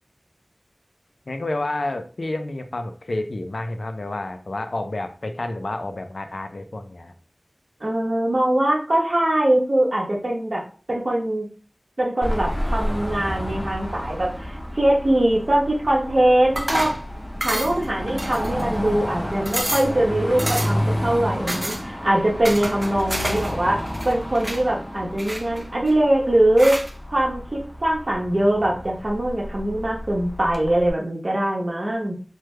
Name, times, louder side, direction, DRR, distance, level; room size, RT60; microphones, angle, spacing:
voice 1, 1.3-7.1, left 2 dB, 85° left, 7 dB, 0.4 m, -29 dB
voice 2, 7.8-10.6 10.9-11.4 12.0-16.9 17.4-23.8 24.0-26.8 27.1-32.1, right 1 dB, 60° right, -2 dB, 1.0 m, -22 dB
Car passing by / Traffic noise roadway noise / Engine, 12.2-30.9, equal, 20° left, 0.6 m, -31 dB
sound 1, 16.6-17.0 17.4-17.9 18.2-18.8 19.1-19.2 19.5-19.9 20.4-20.9 21.5-21.8 22.4-23.5 23.8-24.6 25.2-25.9 26.6-26.9, right 1 dB, 25° right, 0.7 m, -29 dB
3.3 x 2.2 x 3.2 m, 0.39 s
wide cardioid pair, 55°, 0 cm